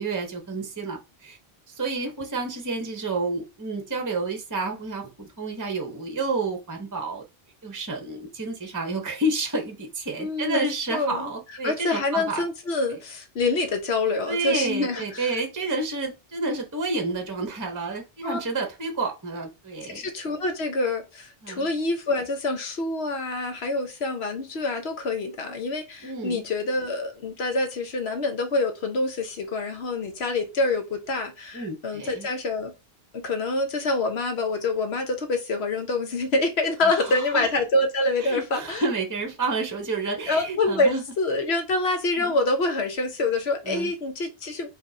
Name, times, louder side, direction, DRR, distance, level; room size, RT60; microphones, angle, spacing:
voice 1, 0.0-1.4 1.8-7.2 7.6-12.4 14.3-20.0 21.4-21.7 26.0-26.4 31.5-32.3 36.8-37.4 38.2-41.0 42.2-42.3 43.7-43.9, right 3 dB, 20° right, 0.7 m, -30 dB
voice 2, 10.2-11.3 11.6-15.3 18.2-18.4 19.9-32.7 33.1-38.8 40.3-44.8, left 2 dB, 90° left, 1.2 m, -26 dB
5.2 x 3.3 x 2.7 m
omnidirectional pair, 1.0 m